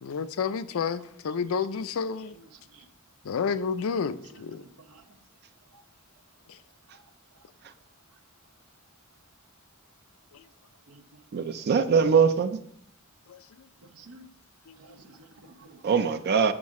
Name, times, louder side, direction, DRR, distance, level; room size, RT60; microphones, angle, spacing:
voice 1, 0.0-2.3 3.3-4.6, left 6 dB, 70° left, 0.4 m, -30 dB
voice 2, 4.3-5.0 10.9-11.0 11.8-11.9 13.9-14.3 14.8-15.8, right 2 dB, 85° right, 0.7 m, -51 dB
voice 3, 11.3-12.6 15.8-16.5, right 6 dB, 50° right, 0.4 m, -22 dB
6.2 x 6.0 x 3.6 m
head